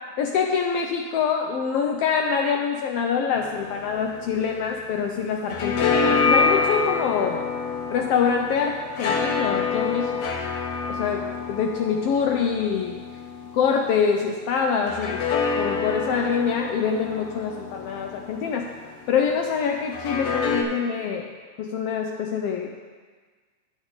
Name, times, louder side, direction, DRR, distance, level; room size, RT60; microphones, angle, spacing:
voice 1, 0.2-7.4 7.9-10.4 10.9-13.0 13.5-15.2 15.6-18.7 19.1-21.3 21.6-22.7, left 6 dB, 80° left, 2 dB, 1.3 m, -25 dB
sound 1, 3.3-5.0 5.3-14.0 14.8-18.9 19.9-20.6, left 5 dB, 65° left, 1.7 m, -27 dB
10.0 x 8.1 x 4.0 m, 1.5 s
omnidirectional pair, 3.3 m